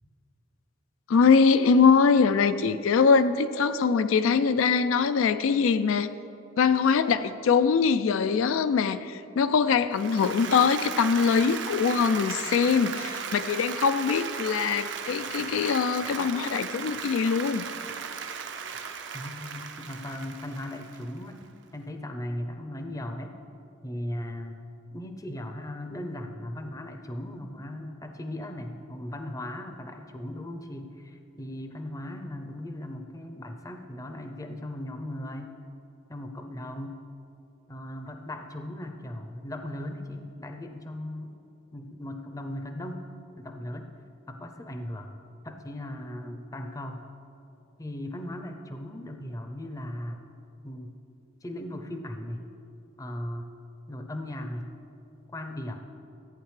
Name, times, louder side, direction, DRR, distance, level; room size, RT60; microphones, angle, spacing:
voice 1, 1.1-6.1 6.6-17.7, left 5 dB, 85° left, 12 dB, 0.3 m, -23 dB
Applause, 9.9-21.3, right 6 dB, 65° right, 0.6 m, -36 dB
voice 2, 19.1-21.4 21.7-23.4 23.8-24.6 24.9-35.5 36.1-37.0 37.7-41.3 41.7-43.1 43.4-43.9 44.3-45.2 45.4-47.0 47.8-50.2 50.6-51.0 51.4-52.5 53.0-53.5 53.9-54.7 55.3-55.8, left 1 dB, 15° left, 5 dB, 0.5 m, -37 dB
14.5 x 8.7 x 3.2 m, 2.7 s
head